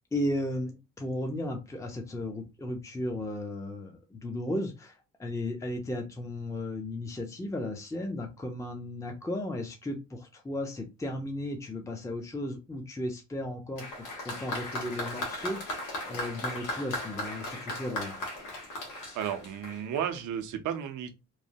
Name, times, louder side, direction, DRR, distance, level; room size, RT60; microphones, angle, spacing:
voice 1, 0.1-18.2, left 1 dB, 10° left, 0.6 m, -35 dB
Applause, 13.8-20.2, left 1 dB, 90° left, 1.1 m, -37 dB
voice 2, 19.1-21.1, right 9 dB, 80° right, 0.6 m, -33 dB
3.1 x 2.1 x 2.7 m
cardioid pair, 90°, 30 cm